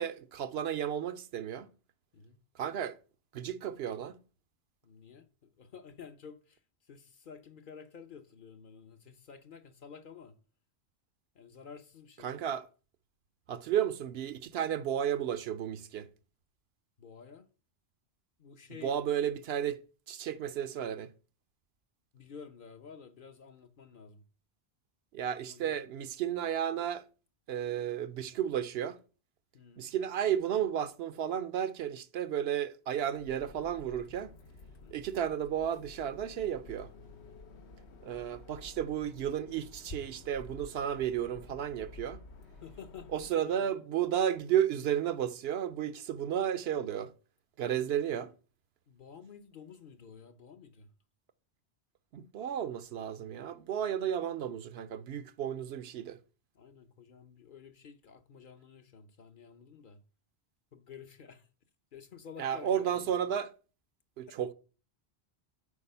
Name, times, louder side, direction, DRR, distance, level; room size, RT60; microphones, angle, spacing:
voice 1, 0.0-1.7 2.5-3.0 3.3-4.2 12.2-12.7 13.5-16.1 18.8-19.8 20.1-21.1 25.1-27.0 27.5-29.0 29.8-34.3 34.9-36.9 38.0-42.2 43.1-47.1 47.6-48.3 52.1-56.2 62.4-63.5 64.2-64.5, right 9 dB, 75° right, 0.8 m, -33 dB
voice 2, 4.8-10.4 11.3-12.3 17.0-17.5 18.4-19.0 22.1-24.2 25.2-25.8 29.5-29.9 34.8-35.0 42.6-43.8 48.9-50.9 56.5-60.0 60.7-61.5 61.9-63.2 64.3-64.4, left 6 dB, 55° left, 0.9 m, -51 dB
sound 1, 33.1-43.3, left 3 dB, 85° left, 1.1 m, -52 dB
8.4 x 4.7 x 5.5 m
omnidirectional pair, 1.1 m